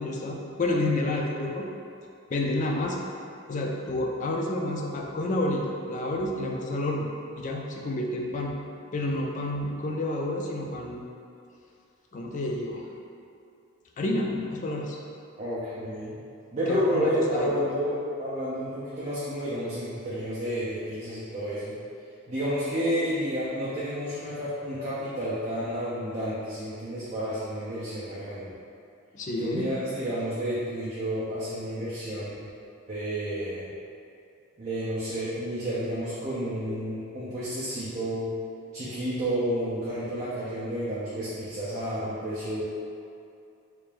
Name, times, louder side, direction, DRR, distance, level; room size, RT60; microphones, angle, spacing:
voice 1, 0.0-1.6 2.3-3.0 3.5-7.1 7.4-8.5 8.9-11.0 12.1-12.8 14.0-15.0 16.7-17.5 29.1-29.7, left 1 dB, 35° left, -1 dB, 0.3 m, -29 dB
voice 2, 15.4-16.2 16.5-21.7 22.3-28.5 29.4-32.3 32.9-33.7 34.6-38.3 38.7-42.6, equal, 35° right, -10 dB, 0.5 m, -30 dB
3.3 x 2.5 x 3.4 m, 2.5 s
head